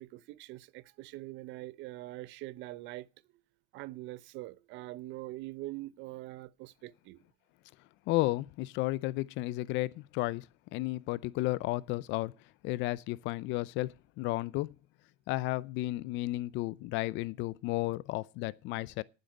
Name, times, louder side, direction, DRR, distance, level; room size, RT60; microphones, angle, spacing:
voice 1, 0.0-3.1 3.7-7.2, right 18 dB, 75° right, 0.8 m, -43 dB
voice 2, 8.1-10.4 10.7-12.3 12.6-14.7 15.3-19.0, left 19 dB, 75° left, 0.6 m, -33 dB
9.5 x 7.7 x 9.1 m
cardioid pair, 100°, 19 cm